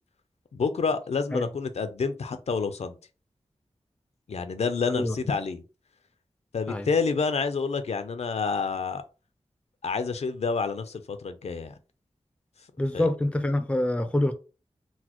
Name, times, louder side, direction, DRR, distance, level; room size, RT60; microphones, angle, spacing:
voice 1, 0.5-3.0 4.3-5.6 6.5-9.0 9.8-11.7 12.9-13.1, left 5 dB, 70° left, 0.4 m, -28 dB
voice 2, 12.8-14.3, left 1 dB, 10° left, 0.4 m, -26 dB
4.0 x 2.1 x 2.9 m
wide cardioid pair, 90°, 11 cm